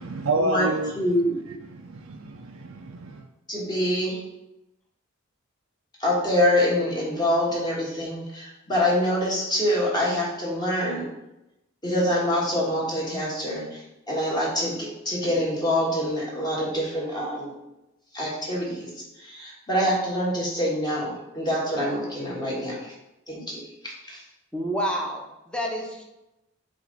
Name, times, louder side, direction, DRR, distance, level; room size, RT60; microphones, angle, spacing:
voice 1, 0.0-0.9 1.6-3.2, right 2 dB, 90° right, 2 dB, 0.5 m, -29 dB
voice 2, 1.0-1.4 3.5-4.2 6.0-11.1 11.8-17.5 18.1-18.9 19.2-22.9 23.3-24.2, left 1 dB, 20° left, -5 dB, 1.4 m, -25 dB
voice 3, 24.5-26.0, equal, 5° left, 0 dB, 0.8 m, -29 dB
7.5 x 2.6 x 5.2 m, 0.94 s
head